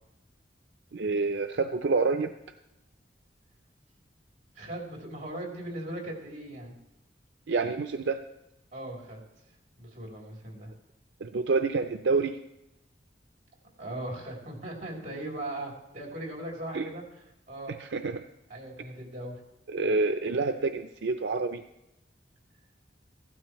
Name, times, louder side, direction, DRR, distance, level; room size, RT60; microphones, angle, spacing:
voice 1, 0.9-2.3 7.5-8.2 11.2-12.4 16.7-16.9 17.7-18.2 19.7-21.6, right 4 dB, 75° right, 7 dB, 0.5 m, -28 dB
voice 2, 4.5-6.7 8.7-9.2 9.8-10.7 13.8-17.0 17.5-17.8 18.5-19.4, right 1 dB, 45° right, -1 dB, 3.2 m, -38 dB
16.0 x 12.5 x 3.1 m, 0.88 s
head